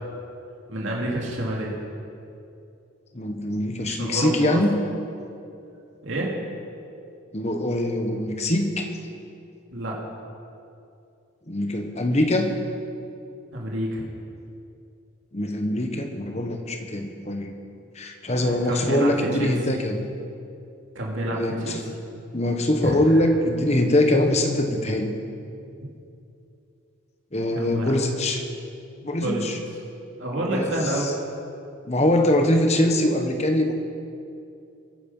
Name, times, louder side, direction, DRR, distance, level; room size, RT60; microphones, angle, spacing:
voice 1, 0.7-1.7 3.9-4.6 6.0-6.3 9.7-10.0 13.5-14.0 18.2-19.5 20.9-21.8 22.8-23.2 27.5-27.9 29.2-29.4 30.2-31.1, right 1 dB, 65° right, -3 dB, 2.6 m, -28 dB
voice 2, 3.1-4.7 7.3-8.9 11.5-12.5 15.3-17.5 17.9-20.0 21.3-21.8 22.3-25.1 27.3-28.4 29.0-29.6 30.4-30.7 31.0-31.1 31.8-33.7, left 1 dB, 30° left, 4 dB, 1.2 m, -23 dB
22.5 x 9.8 x 5.6 m, 2.6 s
head